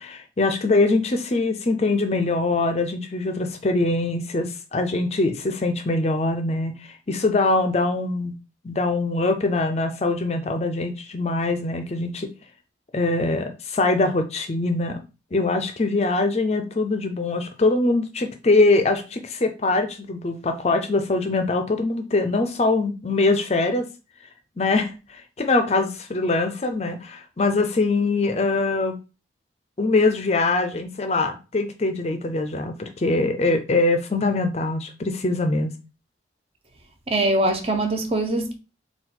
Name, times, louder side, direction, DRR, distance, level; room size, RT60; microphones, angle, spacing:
voice 1, 0.0-8.4 8.6-12.3 12.9-15.0 15.3-23.9 24.6-29.0 29.8-35.7, left 2 dB, 35° left, 0.4 m, -23 dB
voice 2, 37.1-38.5, right 1 dB, 30° right, 0.6 m, -22 dB
4.0 x 2.3 x 4.2 m
head